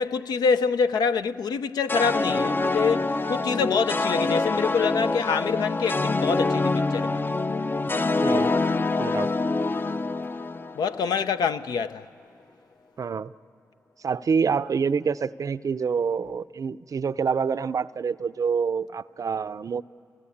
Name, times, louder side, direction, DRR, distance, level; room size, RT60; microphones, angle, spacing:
voice 1, 0.0-7.2 10.8-12.0, left 5 dB, 80° left, 0.6 m, -26 dB
sound 1, 1.9-11.2, left 3 dB, 30° left, 0.5 m, -25 dB
voice 2, 9.0-9.3 13.0-13.3 14.0-19.8, right 6 dB, 55° right, 0.5 m, -26 dB
28.0 x 16.5 x 8.6 m
supercardioid pair, 45°, 7 cm